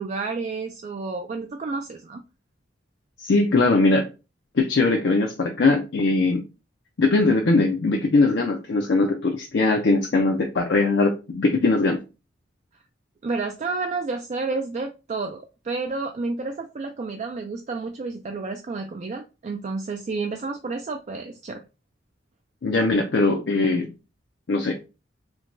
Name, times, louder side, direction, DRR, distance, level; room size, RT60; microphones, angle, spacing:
voice 1, 0.0-2.2 13.2-21.6, right 3 dB, 40° right, 0.3 m, -30 dB
voice 2, 3.2-4.1 4.5-6.4 7.0-12.0 22.6-23.9 24.5-24.9, left 3 dB, 65° left, 0.5 m, -21 dB
4.5 x 2.2 x 2.5 m
head